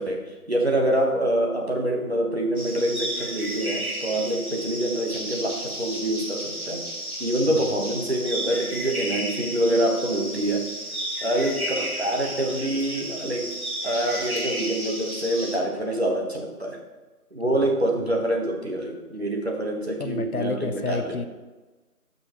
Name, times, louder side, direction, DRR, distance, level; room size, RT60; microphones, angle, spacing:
voice 1, 0.0-6.9 7.2-10.7 11.2-13.5 13.8-16.8 17.3-21.2, right 1 dB, 45° right, 0 dB, 1.3 m, -26 dB
sound 1, 2.6-15.6, right 1 dB, 70° right, 2.2 m, -33 dB
voice 2, 20.0-21.3, left 3 dB, 70° left, 10 dB, 0.7 m, -29 dB
11.5 x 5.6 x 3.0 m, 1.2 s
figure-of-eight pair, 170°, 45 cm